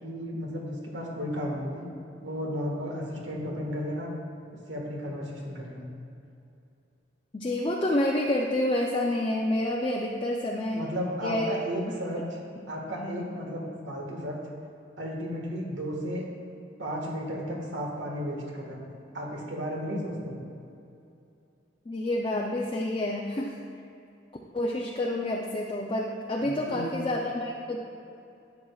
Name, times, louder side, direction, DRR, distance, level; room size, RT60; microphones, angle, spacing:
voice 1, 0.0-1.9 2.2-4.1 4.7-5.9 10.7-12.4 12.7-14.4 15.0-16.3 16.8-18.8 19.1-20.4 26.4-27.0, equal, 75° right, -1 dB, 1.6 m, -34 dB
voice 2, 7.3-10.8 11.2-11.5 12.6-12.7 13.0-13.3 21.9-23.6 24.5-27.8, left 1 dB, 30° left, -1 dB, 0.5 m, -28 dB
11.5 x 8.6 x 2.3 m, 2.7 s
head